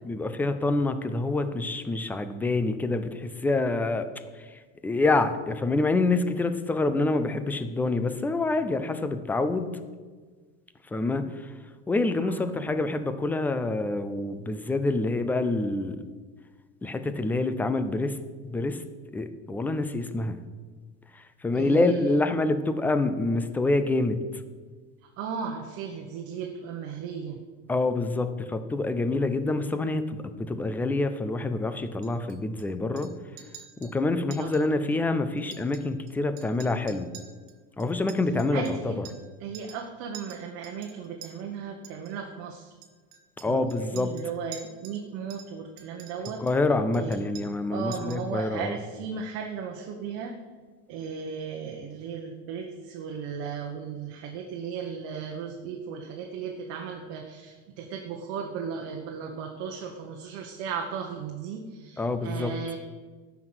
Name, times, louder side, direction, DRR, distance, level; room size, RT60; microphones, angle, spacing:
voice 1, 0.1-4.1 4.4-9.7 10.9-11.5 11.9-16.0 16.8-18.2 18.4-18.8 19.1-20.4 21.1-24.2 27.7-33.1 33.8-37.1 37.8-38.9 43.4-44.1 46.4-48.8 62.0-62.5, left 2 dB, 5° left, 10 dB, 0.3 m, -27 dB
voice 2, 12.2-12.5 21.5-22.2 25.0-27.4 34.4-34.7 38.5-39.0 39.4-42.7 43.5-46.4 46.9-47.2 47.7-50.4 50.9-62.8, right 6 dB, 45° right, 2 dB, 1.1 m, -36 dB
Chink clink, 32.0-32.6 33.0-33.1 33.4-33.9 34.3-34.6 34.9-35.0 35.4-36.1 36.4-39.3 39.5-39.9 40.1-41.3 41.8-42.1 42.8-45.0 45.3-46.6 46.9-47.6 47.9-48.3, right 9 dB, 70° right, 1.7 m, -48 dB
13.5 x 6.0 x 7.8 m, 1.4 s
cardioid pair, 175°, 32 cm